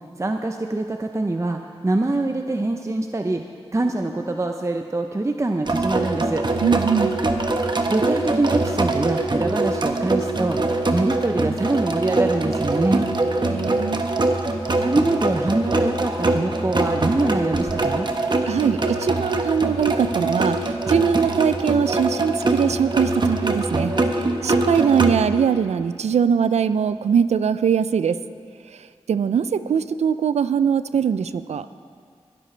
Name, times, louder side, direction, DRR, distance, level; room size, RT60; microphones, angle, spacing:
voice 1, 0.2-3.4 3.7-6.4 7.9-10.6 10.9-13.1 14.8-18.1, right 2 dB, 25° right, 4 dB, 0.7 m, -24 dB
sound 1, 5.7-25.2, right 2 dB, 45° right, 1.0 m, -23 dB
voice 2, 6.6-7.2 13.5-14.0 18.5-28.2 28.7-31.7, right 7 dB, 85° right, 13 dB, 0.4 m, -22 dB
21.5 x 12.0 x 3.3 m, 2.2 s
cardioid pair, 50°, 11 cm